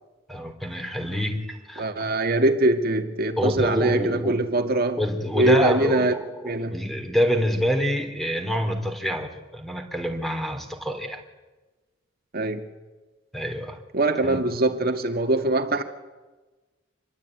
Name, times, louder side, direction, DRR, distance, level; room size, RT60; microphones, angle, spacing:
voice 1, 0.3-1.8 3.4-4.3 5.0-11.2 13.3-13.8 14.2-14.4, equal, ahead, 3.4 m, -26 dB
voice 2, 1.8-5.0 5.4-6.2 6.4-6.8 12.3-12.6 13.9-15.8, right 2 dB, 50° right, 2.1 m, -22 dB
27.0 x 21.5 x 9.4 m
head